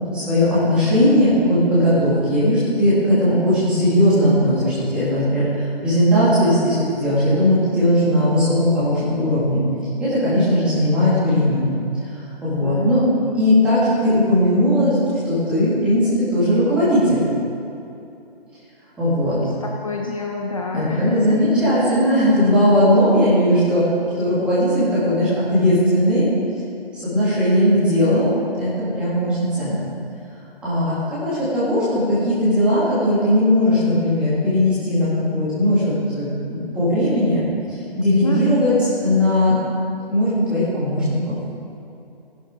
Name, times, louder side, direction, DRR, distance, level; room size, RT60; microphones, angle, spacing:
voice 1, 0.1-9.6 10.0-11.7 12.1-13.0 13.3-15.0 15.2-17.2 19.0-19.4 20.7-23.8 24.2-26.3 26.9-28.3 28.6-29.3 29.6-29.8 30.6-37.4 37.9-39.5 40.1-41.4, left 1 dB, 5° right, -12 dB, 2.1 m, -18 dB
voice 2, 3.1-3.4 12.6-13.0 19.4-21.4 38.2-38.8, left 3 dB, 35° left, 0 dB, 0.8 m, -28 dB
15.5 x 11.0 x 3.8 m, 2.7 s
hypercardioid pair, 170°, 31 cm